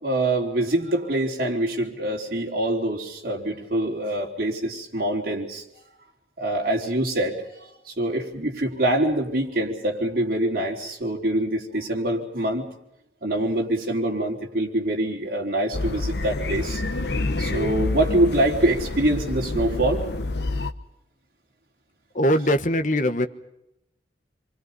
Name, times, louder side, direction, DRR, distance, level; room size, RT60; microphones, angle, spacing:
voice 1, 0.0-5.6 6.4-12.7 13.2-20.0, right 1 dB, 50° right, -1 dB, 4.1 m, -25 dB
sound 1, 15.7-20.7, left 2 dB, 65° left, 1.1 m, -28 dB
voice 2, 22.1-23.3, equal, 45° left, 8 dB, 1.3 m, -21 dB
28.0 x 24.0 x 5.4 m, 0.83 s
head